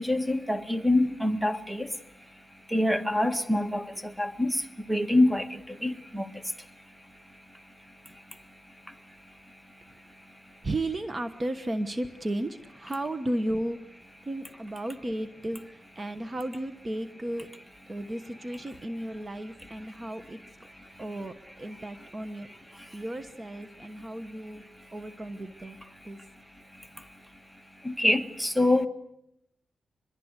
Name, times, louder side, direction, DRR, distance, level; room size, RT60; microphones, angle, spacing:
voice 1, 0.0-1.9 2.7-4.6 4.9-6.2 27.8-28.9, left 1 dB, 5° right, 1.7 m, -25 dB
voice 2, 10.6-13.8 14.3-17.5 17.9-20.4 21.0-22.5 22.9-24.6 24.9-25.8 26.0-26.2, right 1 dB, 30° right, 1.2 m, -34 dB
25.5 x 22.0 x 8.2 m
cardioid pair, 100°, 0 cm